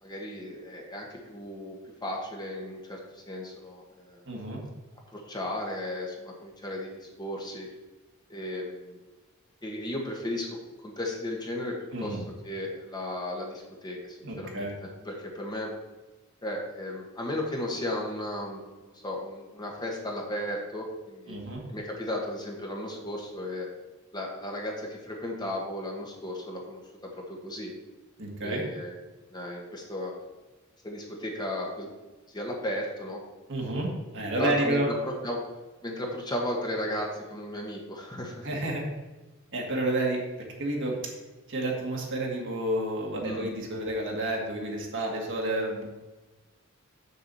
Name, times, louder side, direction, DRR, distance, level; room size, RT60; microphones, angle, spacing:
voice 1, 0.0-4.2 5.1-7.7 8.3-9.0 9.6-15.7 16.4-21.4 21.7-23.7 24.1-26.8 27.1-27.7 28.4-28.9 29.3-30.1 30.8-31.9 32.3-33.2 34.4-35.4 35.8-38.5 43.2-43.5, left 1 dB, 20° left, -1 dB, 1.4 m, -35 dB
voice 2, 4.3-4.6 11.9-12.2 14.2-14.7 21.3-21.6 28.2-28.6 33.5-34.9 38.4-38.8 39.5-40.2 40.6-41.0 41.5-45.9, right 1 dB, 60° right, -1 dB, 2.0 m, -30 dB
6.8 x 4.9 x 7.0 m, 1.2 s
head